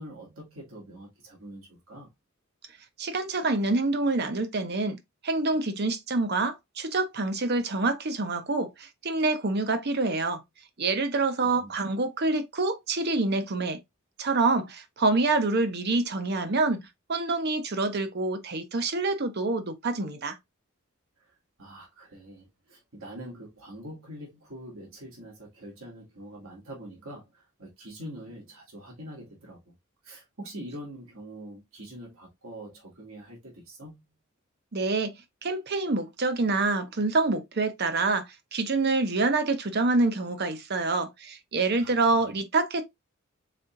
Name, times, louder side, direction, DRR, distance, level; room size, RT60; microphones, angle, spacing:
voice 1, 0.0-2.1 11.3-11.7 21.2-29.6 30.0-34.0 41.8-42.4, right 1 dB, 85° right, 2.1 m, -44 dB
voice 2, 3.0-5.0 5.2-10.4 10.8-13.8 14.2-16.8 17.1-20.4 34.7-35.1 35.4-38.2 38.5-42.8, right 3 dB, 50° right, 0.8 m, -26 dB
4.2 x 4.1 x 2.5 m
head